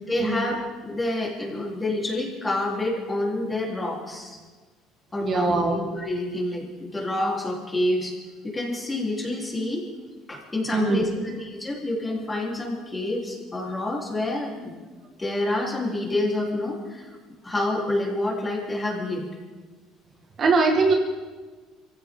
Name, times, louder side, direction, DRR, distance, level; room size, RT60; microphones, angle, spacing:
voice 1, 0.1-4.4 5.1-8.2 8.4-9.9 10.3-14.7 15.2-17.1 17.4-19.3, left 1 dB, 15° left, -2 dB, 3.9 m, -28 dB
voice 2, 5.2-5.8 10.7-11.2 20.4-20.9, right 3 dB, 40° right, 2 dB, 2.0 m, -21 dB
23.5 x 15.5 x 3.9 m, 1.4 s
cardioid pair, 125°, 0 cm